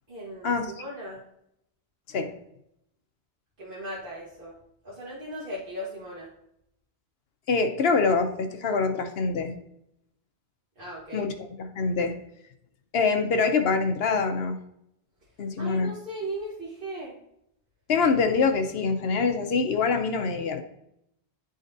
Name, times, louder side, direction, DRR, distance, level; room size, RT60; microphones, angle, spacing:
voice 1, 0.1-1.2 3.6-4.6 4.8-6.3 10.8-11.3 15.6-17.1, right 1 dB, 55° right, -7 dB, 1.7 m, -37 dB
voice 2, 7.5-9.5 11.1-12.2 12.9-14.6 15.4-15.9 17.9-20.6, left 4 dB, 70° left, 6 dB, 0.9 m, -25 dB
11.0 x 3.9 x 2.6 m, 0.78 s
omnidirectional pair, 1.1 m